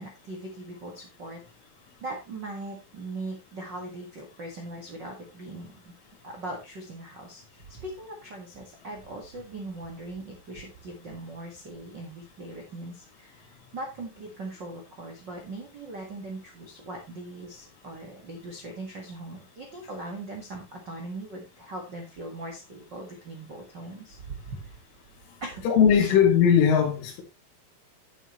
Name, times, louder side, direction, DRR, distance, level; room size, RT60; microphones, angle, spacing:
voice 1, 0.0-1.4 2.0-5.9 6.2-24.8 25.4-25.6 25.9-26.1, right 2 dB, 80° right, 0.9 m, -40 dB
voice 2, 25.7-27.2, left 7 dB, 90° left, 4.7 m, -19 dB
11.0 x 8.0 x 3.1 m
omnidirectional pair, 5.5 m